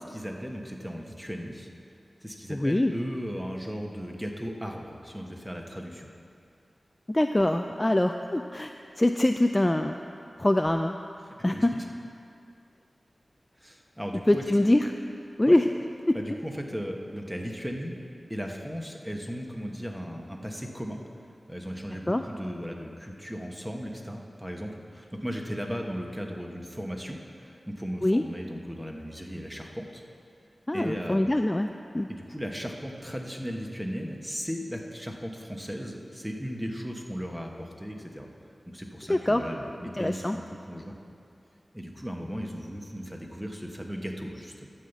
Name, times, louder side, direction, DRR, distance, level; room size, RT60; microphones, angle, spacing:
voice 1, 0.1-1.7 2.2-6.1 11.3-11.8 13.6-14.4 15.4-15.6 16.1-17.9 18.3-21.0 21.5-30.0 30.7-31.3 32.1-38.3 38.7-40.4 40.7-40.9 41.7-44.7, equal, 5° right, 1 dB, 1.2 m, -36 dB
voice 2, 2.5-2.9 7.1-10.0 10.4-10.9 11.4-11.7 14.3-14.9 15.4-15.7 16.1-16.2 22.1-22.2 28.0-28.3 30.7-31.7 31.9-32.1 39.1-39.4 39.9-40.4, left 1 dB, 20° left, 5 dB, 0.3 m, -24 dB
11.0 x 5.7 x 8.1 m, 2.5 s
wide cardioid pair, 90°, 0 cm